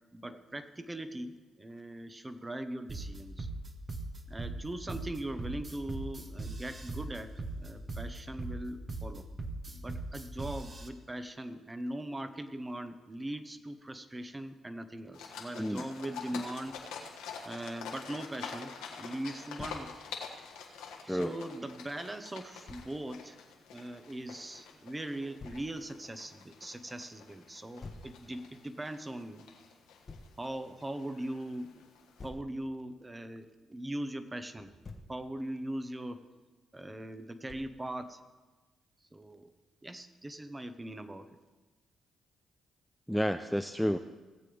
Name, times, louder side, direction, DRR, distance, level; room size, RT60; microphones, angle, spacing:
voice 1, 0.1-3.5 4.3-9.3 9.7-16.7 17.4-19.9 21.1-23.4 23.7-29.5 30.4-31.8 32.2-34.7 35.1-36.2 36.7-38.2 39.1-39.5 39.8-41.3, right 1 dB, 20° right, 9 dB, 1.0 m, -40 dB
sound 1, 2.9-10.9, right 2 dB, 35° right, 1.2 m, -39 dB
sound 2, 15.1-32.3, left 6 dB, 85° left, 1.4 m, -47 dB
Thump thud, 19.6-19.9 22.7-22.9 25.4-25.7 27.8-28.1 30.1-30.3 32.2-32.5 34.6-35.2 37.5-37.8, left 3 dB, 40° left, 1.1 m, -47 dB
voice 2, 43.1-44.0, equal, ahead, 7 dB, 0.5 m, -30 dB
17.5 x 7.7 x 3.5 m, 1.2 s
supercardioid pair, 55°, 0 cm